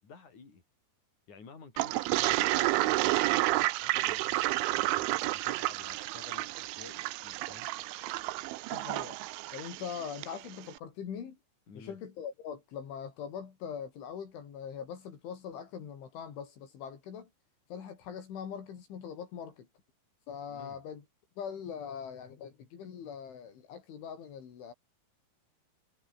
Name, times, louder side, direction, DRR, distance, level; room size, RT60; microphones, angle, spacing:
voice 1, 0.0-0.6 1.3-3.0 3.3-7.7 11.7-12.0 20.5-20.8, left 5 dB, 40° left, 7.3 m, -52 dB
Toilet flush, 1.8-10.4, right 18 dB, 85° right, 3.4 m, -30 dB
voice 2, 8.7-9.2 9.5-11.4 11.8-17.3 17.7-19.7 20.3-21.0 21.4-24.7, left 7 dB, 75° left, 6.2 m, -42 dB
omnidirectional pair, 5.5 m